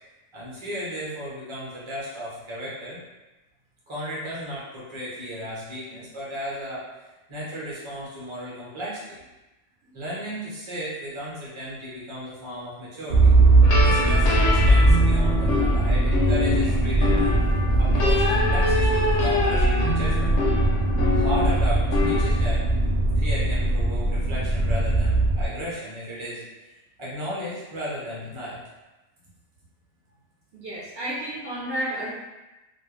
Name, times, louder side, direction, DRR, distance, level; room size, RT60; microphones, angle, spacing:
voice 1, 0.3-3.0 3.9-9.2 9.9-13.3 13.8-17.3 17.8-20.4 21.0-22.7 23.1-28.6, equal, 30° right, -7 dB, 0.7 m, -35 dB
Motor vehicle (road), 13.1-25.5, right 2 dB, 90° right, 0.3 m, -20 dB
sound 1, 13.6-22.3, left 3 dB, 80° left, 0.9 m, -26 dB
voice 2, 30.5-32.1, right 1 dB, 60° right, -7 dB, 0.8 m, -31 dB
2.5 x 2.0 x 3.1 m, 1.1 s
omnidirectional pair, 1.3 m